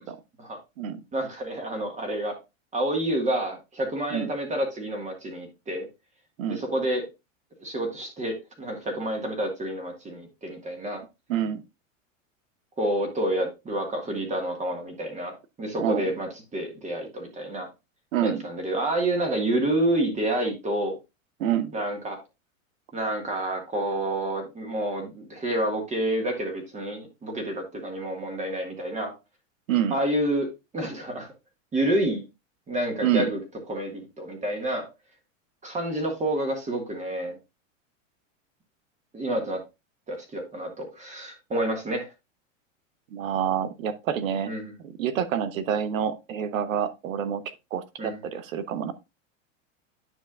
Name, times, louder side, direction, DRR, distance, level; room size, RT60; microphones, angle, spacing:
voice 1, 1.1-2.4 2.7-5.9 6.5-7.0 7.6-11.0 12.8-15.3 15.6-17.7 18.2-21.0 21.7-22.2 22.9-29.1 29.9-30.5 30.7-31.3 31.7-32.2 32.7-33.4 33.7-34.8 35.6-37.4 39.1-39.6 40.1-42.1 44.5-44.7 48.0-48.2, right 1 dB, 20° right, 1.8 m, -28 dB
voice 2, 11.3-11.6 15.8-16.1 18.1-18.4 21.4-21.7 29.7-30.0 33.0-33.3 43.1-44.5 44.8-47.4 47.7-48.9, right 9 dB, 90° right, 1.0 m, -27 dB
9.7 x 5.7 x 2.4 m
supercardioid pair, 130°, 39 cm